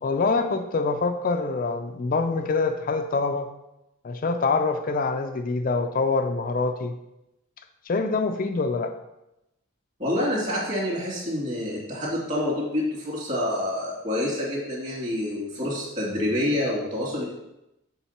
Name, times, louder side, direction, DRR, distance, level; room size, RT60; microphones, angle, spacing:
voice 1, 0.0-3.5 4.0-7.0 7.9-8.9, left 3 dB, 40° left, 6 dB, 0.4 m, -25 dB
voice 2, 10.0-17.3, left 1 dB, 35° right, -5 dB, 2.4 m, -27 dB
7.0 x 3.8 x 5.7 m, 0.91 s
head